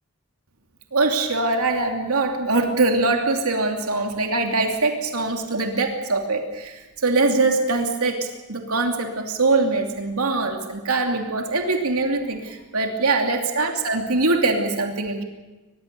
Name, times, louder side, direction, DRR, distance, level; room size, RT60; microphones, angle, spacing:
voice 1, 0.9-15.2, right 3 dB, 85° right, 3 dB, 2.8 m, -23 dB
23.5 x 21.0 x 6.9 m, 1.1 s
head